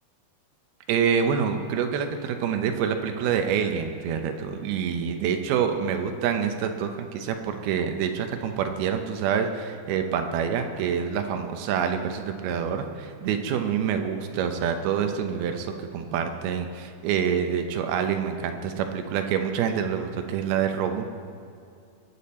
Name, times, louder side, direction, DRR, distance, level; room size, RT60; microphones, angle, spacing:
voice 1, 0.9-21.0, right 7 dB, 90° right, 6 dB, 2.8 m, -27 dB
21.5 x 8.7 x 4.3 m, 2.5 s
omnidirectional pair, 4.3 m